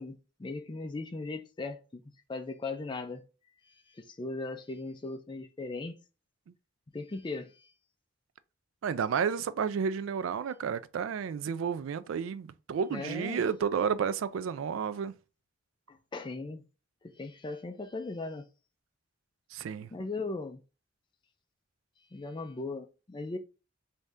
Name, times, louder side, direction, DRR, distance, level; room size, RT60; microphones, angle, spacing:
voice 1, 0.0-2.0 2.3-3.2 3.9-6.0 6.9-7.7 12.9-13.4 15.9-16.6 17.0-18.5 19.9-20.6 22.1-23.4, left 3 dB, 25° left, 0.4 m, -38 dB
voice 2, 8.8-15.1 19.5-19.9, right 6 dB, 90° right, 0.3 m, -31 dB
3.2 x 2.7 x 3.5 m
head